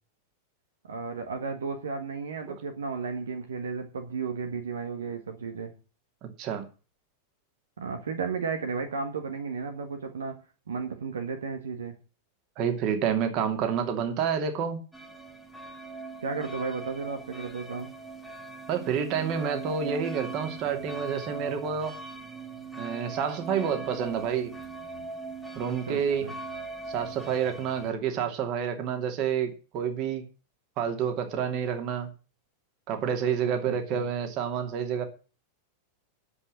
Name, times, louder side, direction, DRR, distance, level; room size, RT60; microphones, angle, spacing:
voice 1, 0.9-5.7 7.8-10.4 10.7-12.0 16.2-17.9 25.7-26.3 33.4-34.1, right 5 dB, 65° right, 1.6 m, -34 dB
voice 2, 6.2-6.6 12.6-14.8 18.7-21.9 22.8-24.5 25.5-26.3 26.9-30.2 30.8-32.1 32.9-35.0, right 7 dB, 40° right, 2.6 m, -29 dB
sound 1, 14.9-27.9, right 3 dB, ahead, 1.7 m, -40 dB
9.8 x 8.0 x 7.7 m
figure-of-eight pair, 90°, 0 cm